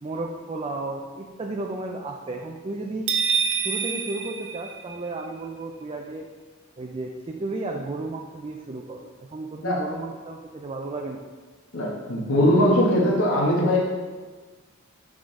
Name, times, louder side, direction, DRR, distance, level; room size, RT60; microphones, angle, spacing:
voice 1, 0.0-3.1 3.6-6.3 6.8-11.2, right 2 dB, 30° right, 1 dB, 0.4 m, -33 dB
sound 1, 3.1-5.3, right 6 dB, 60° right, 0.7 m, -26 dB
voice 2, 11.7-13.8, equal, 85° left, -4 dB, 1.3 m, -20 dB
6.0 x 4.9 x 3.7 m, 1.4 s
head